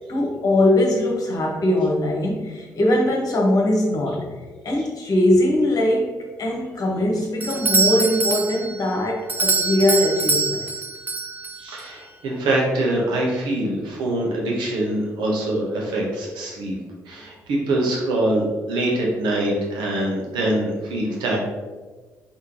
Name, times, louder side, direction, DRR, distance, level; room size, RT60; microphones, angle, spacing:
voice 1, 0.1-4.3 4.6-10.7, left 1 dB, 45° left, -1 dB, 1.1 m, -21 dB
Doorbell, 7.4-11.9, right 3 dB, 20° right, 0.5 m, -24 dB
voice 2, 11.6-16.8 17.1-21.4, right 1 dB, 60° right, -2 dB, 1.0 m, -24 dB
4.2 x 3.7 x 3.0 m, 1.3 s
figure-of-eight pair, 45°, 9 cm